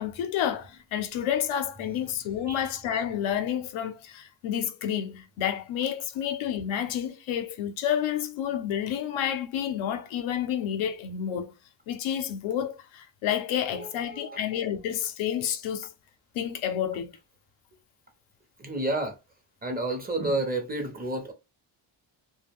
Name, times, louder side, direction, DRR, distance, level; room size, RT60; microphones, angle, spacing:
voice 1, 0.0-11.5 11.9-15.9 16.3-17.1, left 9 dB, 85° left, 0.6 m, -30 dB
voice 2, 13.7-14.5 18.6-19.1 19.6-21.3, right 2 dB, 20° right, 0.7 m, -31 dB
2.2 x 2.2 x 3.4 m
cardioid pair, 105°, 46 cm